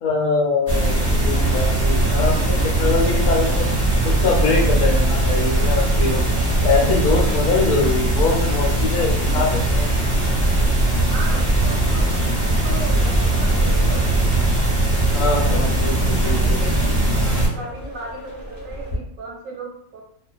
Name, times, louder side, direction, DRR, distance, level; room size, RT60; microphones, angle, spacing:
voice 1, 0.0-3.7 4.0-6.2 6.6-9.9 15.1-16.6, left 4 dB, 80° left, -1 dB, 1.1 m, -23 dB
sound 1, 0.7-17.5, right 1 dB, 20° right, 0.7 m, -19 dB
sound 2, 0.8-19.0, equal, 40° left, 0.9 m, -38 dB
voice 2, 11.1-14.4 15.2-15.7 16.0-20.0, right 3 dB, 70° right, -1 dB, 0.9 m, -37 dB
2.4 x 2.3 x 2.4 m, 0.69 s
omnidirectional pair, 1.6 m